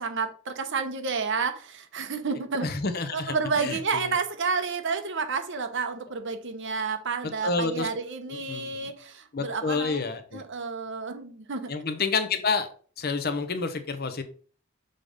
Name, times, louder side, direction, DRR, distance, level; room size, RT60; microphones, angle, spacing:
voice 1, 0.0-2.7 3.1-11.7, right 5 dB, 60° right, 0.9 m, -30 dB
voice 2, 2.6-4.1 7.4-7.9 8.3-8.9 9.3-10.4 11.7-12.7 13.0-14.2, left 4 dB, 50° left, 0.8 m, -29 dB
6.5 x 3.8 x 5.0 m
head